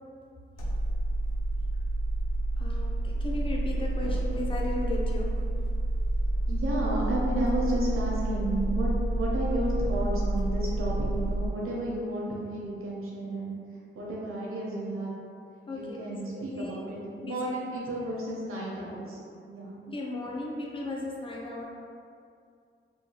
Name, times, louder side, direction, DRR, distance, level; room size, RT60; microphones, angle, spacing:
sound 1, 0.6-11.5, right 1 dB, 75° left, 0.5 m, -29 dB
voice 1, 2.6-5.5 15.7-16.8 17.2-17.6 19.8-21.6, left 2 dB, 25° left, -2 dB, 0.4 m, -36 dB
voice 2, 6.5-13.6 13.9-15.1 15.7-19.2 19.5-19.7, right 1 dB, 80° right, -4 dB, 0.7 m, -32 dB
2.8 x 2.2 x 2.8 m, 2.3 s
wide cardioid pair, 155°, 21 cm